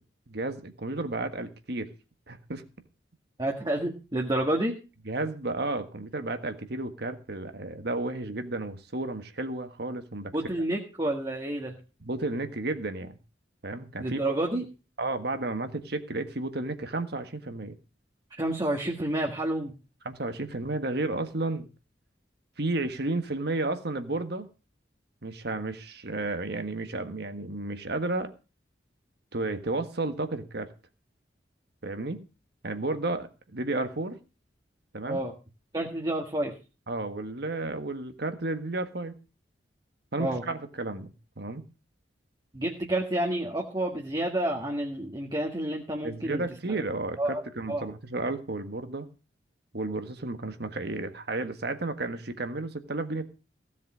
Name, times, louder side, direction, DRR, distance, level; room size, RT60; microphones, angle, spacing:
voice 1, 0.3-1.9 2.3-2.6 5.0-10.3 12.0-13.2 13.6-14.3 15.0-17.7 20.0-21.7 22.6-24.5 25.2-28.4 29.3-30.7 31.8-32.3 32.6-34.2 34.9-35.2 36.9-39.1 40.1-41.6 46.0-49.1 49.7-53.2, right 2 dB, 65° right, 1.6 m, -32 dB
voice 2, 3.4-4.8 10.3-11.8 14.0-14.6 18.4-19.7 35.1-35.3 35.7-36.6 40.2-40.4 42.5-46.4 46.7-46.8 47.2-47.4 47.7-47.9, right 1 dB, 25° right, 1.7 m, -29 dB
16.0 x 7.5 x 6.2 m
head